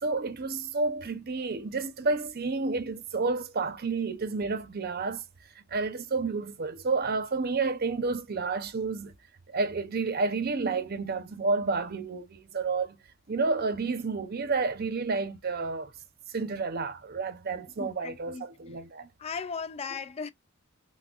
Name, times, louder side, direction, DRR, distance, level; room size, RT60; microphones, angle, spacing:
voice 1, 0.0-5.2 5.6-9.1 9.5-13.0 13.3-15.9 16.3-19.1, right 4 dB, 50° right, 0.7 m, -30 dB
voice 2, 17.8-18.5 19.2-20.3, left 5 dB, 30° left, 0.3 m, -37 dB
6.0 x 2.2 x 2.4 m
head